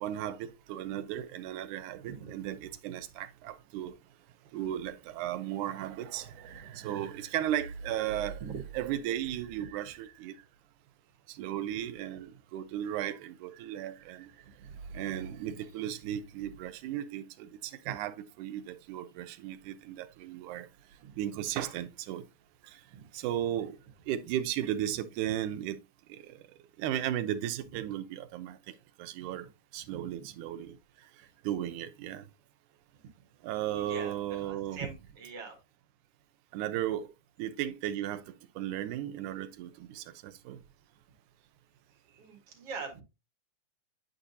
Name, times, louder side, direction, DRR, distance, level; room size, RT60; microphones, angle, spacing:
voice 1, 0.0-3.9 4.5-8.4 8.7-10.3 11.3-14.3 14.9-20.7 21.2-22.3 22.6-22.8 23.1-23.8 24.1-25.8 26.1-26.4 26.8-28.6 29.0-29.5 29.7-30.8 31.4-32.2 33.4-34.9 36.5-37.1 37.4-40.6, right 11 dB, 85° right, 2.2 m, -35 dB
voice 2, 2.0-2.4 8.4-8.6 14.4-14.8 17.8-18.0 22.9-23.1 29.2-29.3 29.9-30.1 33.8-35.6 42.1-43.0, right 5 dB, 55° right, 2.4 m, -43 dB
9.2 x 5.0 x 2.7 m
omnidirectional pair, 3.5 m